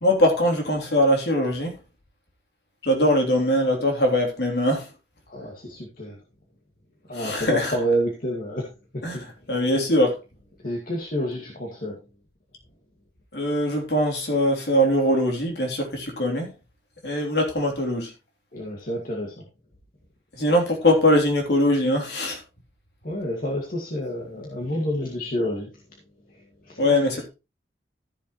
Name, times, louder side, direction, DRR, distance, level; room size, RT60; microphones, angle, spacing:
voice 1, 0.0-1.7 2.8-4.9 7.2-7.7 9.0-9.2 9.5-10.1 13.3-16.5 17.0-18.1 20.3-22.4 26.8-27.3, left 1 dB, 60° left, 1 dB, 3.3 m, -21 dB
voice 2, 5.3-6.2 7.1-9.7 10.6-12.0 18.5-19.4 23.0-25.8 26.3-26.9, equal, 45° left, -2 dB, 2.1 m, -29 dB
13.5 x 7.2 x 3.1 m, 0.28 s
head